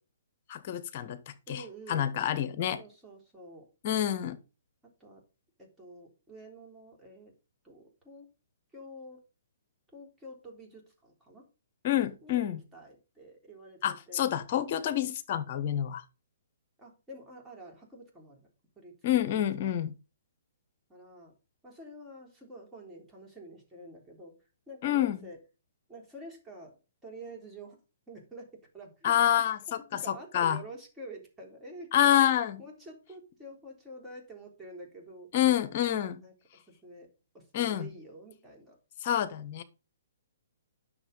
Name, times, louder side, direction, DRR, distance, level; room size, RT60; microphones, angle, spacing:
voice 1, 0.5-1.2 1.5-1.6 1.9-2.8 3.8-4.4 11.8-12.6 13.8-16.0 19.0-19.9 24.8-25.2 29.0-30.6 31.9-32.6 35.3-36.2 37.5-37.9 39.0-39.6, left 11 dB, 40° left, 1.1 m, -27 dB
voice 2, 1.5-2.1 2.8-3.7 4.8-5.2 5.6-7.3 7.6-8.3 8.7-9.2 9.9-11.5 12.2-14.3 16.8-18.5 18.8-19.7 20.9-21.3 21.6-24.3 24.7-25.4 25.9-26.8 27.0-27.8 28.1-29.1 29.7-32.2 32.6-35.3 36.2-36.3 36.7-37.1 37.3-38.8, right 1 dB, 10° right, 3.6 m, -48 dB
9.9 x 6.7 x 5.3 m
figure-of-eight pair, 120°, 0 cm